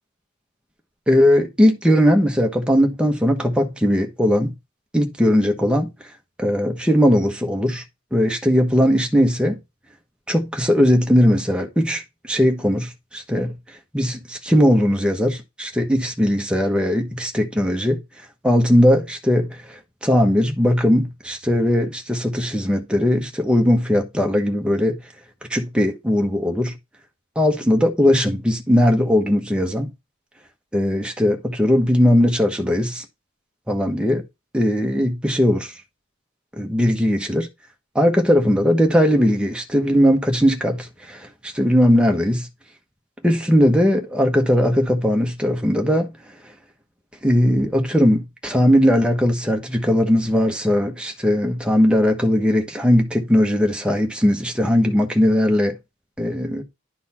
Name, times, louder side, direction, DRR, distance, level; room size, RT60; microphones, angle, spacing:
voice 1, 1.1-4.5 4.9-5.9 6.4-7.8 8.1-9.6 10.3-13.5 13.9-18.0 18.4-25.0 25.5-26.8 27.4-29.9 30.7-33.0 33.7-34.2 34.5-35.7 36.6-37.5 37.9-42.5 43.2-46.1 47.2-55.7 56.2-56.6, equal, 5° right, 1.1 m, -19 dB
11.0 x 4.1 x 4.3 m
head